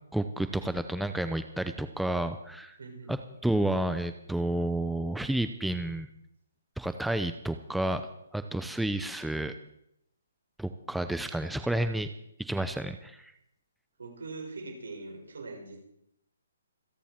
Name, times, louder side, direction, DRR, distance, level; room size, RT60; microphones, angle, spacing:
voice 1, 0.1-2.8 3.1-6.1 6.8-8.0 8.3-9.6 10.6-12.1 12.4-13.3, right 1 dB, ahead, 9 dB, 0.6 m, -30 dB
voice 2, 2.8-3.3 14.0-15.8, right 3 dB, 75° right, 2 dB, 5.6 m, -42 dB
27.0 x 10.0 x 4.5 m, 0.77 s
hypercardioid pair, 145°, 0 cm